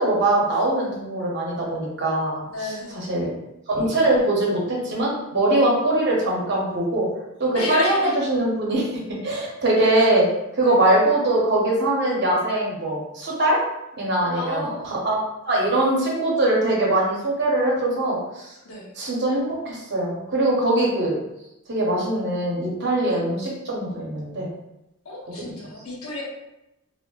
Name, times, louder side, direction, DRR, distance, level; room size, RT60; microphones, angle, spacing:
voice 1, 0.0-2.4 3.1-3.3 3.7-7.1 7.4-10.3 10.5-13.6 14.0-14.7 15.0-15.2 15.4-18.5 19.0-21.2 21.7-24.5, right 1 dB, 50° right, -3 dB, 0.8 m, -22 dB
voice 2, 2.5-3.3 7.5-8.2 10.6-10.8 14.3-14.9 18.6-18.9 23.1-23.2 25.0-26.2, left 2 dB, 75° left, -3 dB, 0.9 m, -32 dB
3.5 x 2.1 x 2.3 m, 0.90 s
head